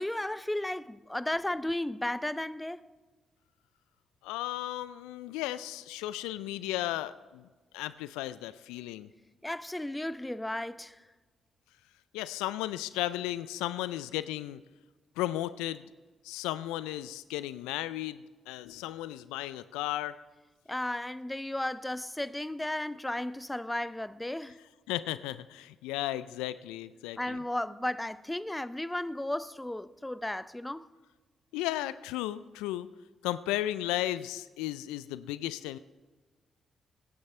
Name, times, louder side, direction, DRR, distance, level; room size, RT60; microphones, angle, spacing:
voice 1, 0.0-2.9 9.4-11.0 20.7-24.6 27.2-30.9, left 1 dB, 10° left, 0.6 m, -34 dB
voice 2, 4.2-7.5 7.7-9.1 12.1-14.6 15.2-15.9 16.2-20.2 24.9-27.4 31.5-32.9 33.2-35.8, left 14 dB, 80° left, 0.4 m, -35 dB
21.5 x 10.5 x 3.3 m
hypercardioid pair, 45°, 0 cm